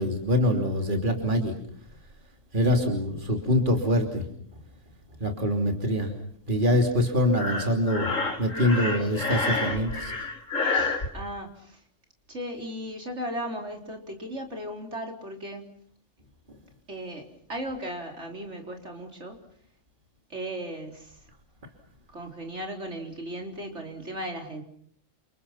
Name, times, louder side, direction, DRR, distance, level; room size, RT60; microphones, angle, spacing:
voice 1, 0.0-1.5 2.5-4.2 5.2-6.1 6.5-8.1 8.4-10.1, left 1 dB, 40° right, 3 dB, 3.3 m, -24 dB
Breathing, 7.3-11.1, left 3 dB, 80° left, 3.4 m, -29 dB
voice 2, 11.1-11.8 12.3-15.7 16.9-19.4 20.3-21.2 22.1-24.6, equal, 65° right, 2 dB, 4.3 m, -36 dB
30.0 x 27.5 x 5.8 m, 0.63 s
omnidirectional pair, 1.3 m